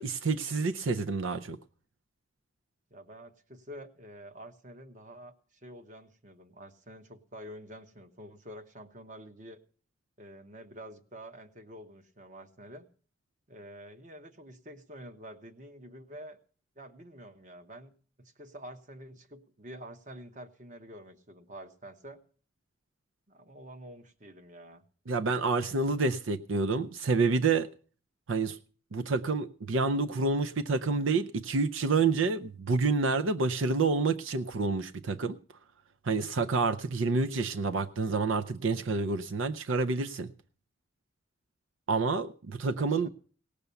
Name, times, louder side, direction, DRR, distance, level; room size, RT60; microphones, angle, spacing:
voice 1, 0.0-1.6 25.1-27.7 28.3-28.6 28.9-35.4 36.0-40.3 41.9-43.1, right 4 dB, 75° right, 10 dB, 0.5 m, -28 dB
voice 2, 2.9-5.4 5.6-9.6 10.2-12.9 13.5-16.4 16.8-22.2 23.3-24.8 42.7-43.1, equal, 40° right, 8 dB, 1.1 m, -48 dB
18.0 x 6.8 x 6.9 m, 0.44 s
head